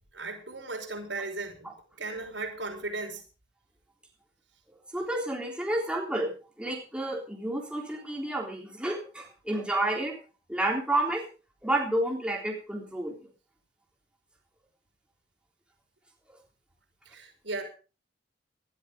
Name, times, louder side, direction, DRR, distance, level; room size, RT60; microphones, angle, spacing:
voice 1, 0.1-1.7 2.0-3.2 17.1-17.6, right 3 dB, 85° right, 2 dB, 5.6 m, -36 dB
voice 2, 4.9-6.3 6.6-10.2 10.5-11.2 11.6-13.1, right 1 dB, 5° right, -1 dB, 3.5 m, -30 dB
20.0 x 12.5 x 3.7 m, 0.35 s
head